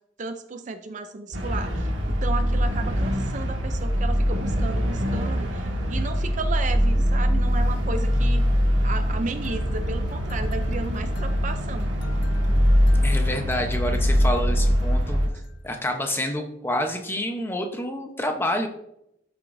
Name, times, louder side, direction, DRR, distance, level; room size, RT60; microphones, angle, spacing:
voice 1, 0.2-8.5 8.8-11.9, right 3 dB, 40° right, 9 dB, 0.5 m, -34 dB
sound 1, 1.3-15.3, equal, 70° right, 1.7 m, -23 dB
sound 2, 9.4-15.1, equal, 55° left, 0.7 m, -35 dB
voice 2, 13.0-15.2 15.6-18.7, left 1 dB, 10° left, 4 dB, 0.8 m, -28 dB
13.0 x 7.0 x 2.6 m, 0.82 s
head